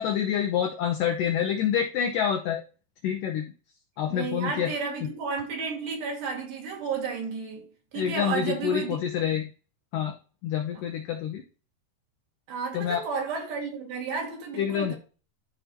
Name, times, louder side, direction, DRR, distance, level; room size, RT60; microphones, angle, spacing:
voice 1, 0.0-2.6 3.0-3.5 4.0-4.7 8.0-9.5 9.9-10.2 10.4-11.4 12.7-13.0 14.6-14.9, left 9 dB, 80° left, 1.9 m, -27 dB
voice 2, 4.1-9.0 12.5-15.0, right 5 dB, 65° right, 3.8 m, -32 dB
13.5 x 5.0 x 3.0 m
omnidirectional pair, 4.8 m